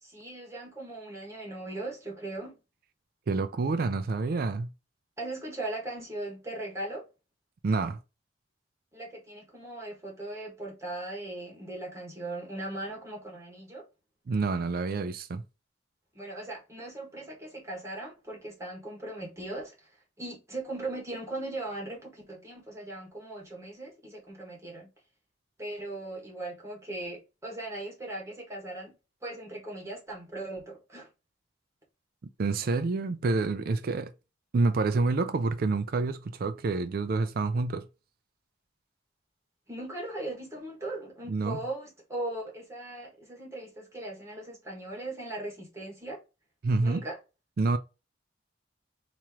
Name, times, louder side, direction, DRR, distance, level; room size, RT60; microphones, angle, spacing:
voice 1, 0.0-2.5 5.2-7.0 8.9-13.8 16.1-19.9 20.2-24.9 25.6-28.9 29.2-31.1 39.7-46.2 46.8-47.2, right 2 dB, 15° right, 1.4 m, -39 dB
voice 2, 3.3-4.7 7.6-8.0 14.3-15.4 32.4-34.1 34.5-37.9 41.3-41.6 46.6-47.0 47.6-47.8, right 3 dB, 55° right, 0.4 m, -28 dB
3.0 x 3.0 x 3.5 m
head